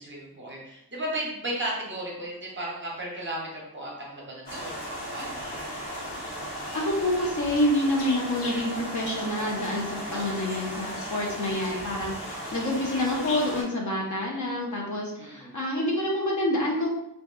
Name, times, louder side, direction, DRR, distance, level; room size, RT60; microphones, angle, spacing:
voice 1, 0.0-4.8 5.1-5.5 10.1-10.3 11.2-11.4 15.2-15.5, right 1 dB, 30° right, -3 dB, 0.7 m, -35 dB
sound 1, 4.5-13.6, equal, 85° left, 1.1 m, -36 dB
voice 2, 6.7-16.9, left 1 dB, 45° left, -1 dB, 0.6 m, -27 dB
2.6 x 2.3 x 2.3 m, 0.83 s
wide cardioid pair, 110°, 41 cm